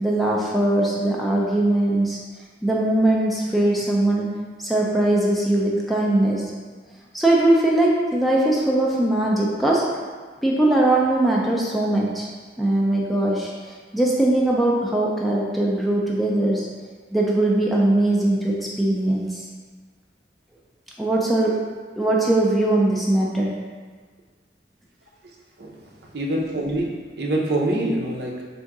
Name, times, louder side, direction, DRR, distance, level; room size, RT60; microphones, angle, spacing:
voice 1, 0.0-2.2 2.6-4.3 4.6-6.5 7.1-9.9 10.4-12.3 12.6-13.5 13.9-16.7 17.1-19.4 21.0-21.6 22.0-23.5, right 1 dB, ahead, -4 dB, 0.4 m, -20 dB
voice 2, 26.1-26.9 27.2-28.4, right 1 dB, 65° right, -1 dB, 0.6 m, -24 dB
3.6 x 2.7 x 4.6 m, 1.5 s
head